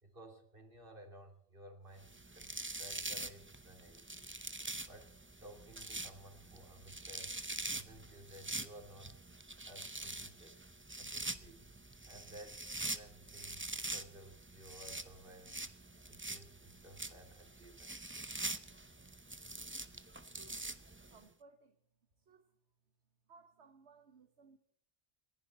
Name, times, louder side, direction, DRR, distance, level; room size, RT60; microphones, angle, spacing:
voice 1, 0.0-4.4 4.9-5.1 5.4-9.2 9.7-10.6 11.0-11.7 12.0-15.7 16.1-17.9, right 1 dB, 50° right, 4 dB, 3.2 m, -56 dB
sound 1, 2.0-21.2, right 2 dB, 15° right, 0.6 m, -45 dB
voice 2, 21.1-21.8 22.2-22.5 23.3-24.6, right 4 dB, 70° right, 6 dB, 1.5 m, -62 dB
28.5 x 11.0 x 4.2 m, 0.67 s
omnidirectional pair, 1.2 m